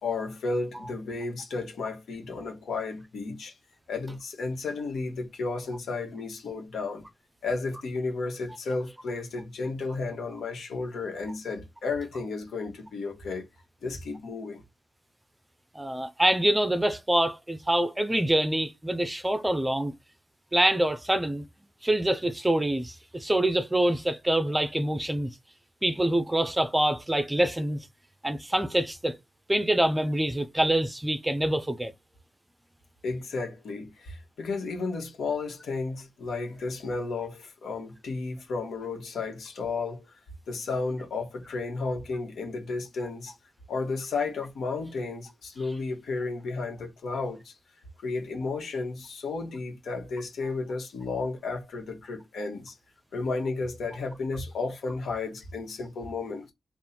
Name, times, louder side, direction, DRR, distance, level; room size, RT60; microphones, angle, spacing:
voice 1, 0.0-3.5 3.9-7.0 7.4-13.5 13.8-14.6 33.0-40.1 40.5-43.3 43.7-47.5 48.0-52.7 53.1-56.5, left 3 dB, 85° left, 1.3 m, -33 dB
voice 2, 15.7-19.9 20.5-21.5 21.8-25.3 25.8-27.8 28.2-29.2 29.5-31.9, right 1 dB, 10° right, 0.5 m, -25 dB
3.7 x 2.5 x 4.2 m
wide cardioid pair, 125°, 0 cm